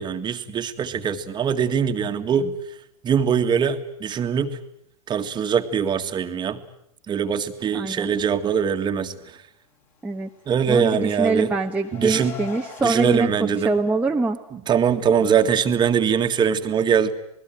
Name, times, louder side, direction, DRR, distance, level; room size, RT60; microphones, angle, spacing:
voice 1, 0.0-2.5 3.0-4.6 5.1-6.6 7.1-9.1 10.5-11.5 11.9-12.3 12.8-13.7 14.5-17.1, right 7 dB, 25° right, 7 dB, 1.8 m, -22 dB
voice 2, 7.7-8.1 10.0-10.3 10.7-14.4, right 3 dB, 5° right, 0 dB, 1.2 m, -24 dB
Car, 10.5-13.0, left 5 dB, 40° left, 5.7 m, -41 dB
27.5 x 19.5 x 9.1 m, 0.81 s
hypercardioid pair, 110°, 19 cm